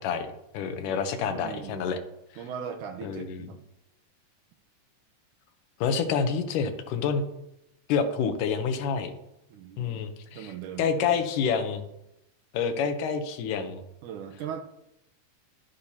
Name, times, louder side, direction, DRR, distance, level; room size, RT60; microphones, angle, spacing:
voice 1, 0.0-2.0 3.0-3.5 5.8-7.2 7.9-9.1 9.8-10.5 10.8-11.8 12.5-13.8, left 6 dB, 85° left, 8 dB, 2.4 m, -28 dB
voice 2, 1.2-1.9 2.4-3.7 9.5-11.2 14.0-14.6, right 8 dB, 85° right, 5 dB, 2.3 m, -39 dB
11.5 x 9.3 x 2.8 m, 0.86 s
omnidirectional pair, 3.7 m